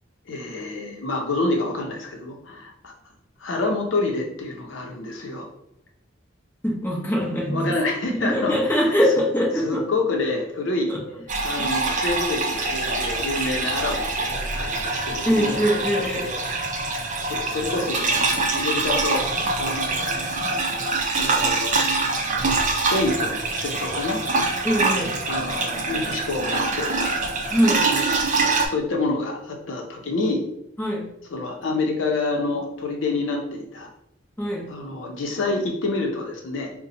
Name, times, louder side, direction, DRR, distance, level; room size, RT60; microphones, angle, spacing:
voice 1, 0.3-2.9 3.4-5.5 7.5-8.9 9.5-10.9 11.4-15.6 16.2-16.5 17.3-19.2 19.6-20.3 21.2-21.8 22.7-24.2 25.3-27.3 27.7-30.4 31.3-33.9 34.7-36.7, left 2 dB, 70° left, 1 dB, 0.7 m, -28 dB
voice 2, 6.6-7.7 8.1-9.8 10.9-11.0 11.6-11.7 15.2-16.3 24.6-25.2 27.5-27.9 30.8-31.1 34.4-34.7, equal, 10° left, -3 dB, 0.9 m, -22 dB
sound 1, 11.3-28.7, right 3 dB, 40° right, 0.5 m, -25 dB
4.1 x 2.2 x 4.0 m, 0.77 s
head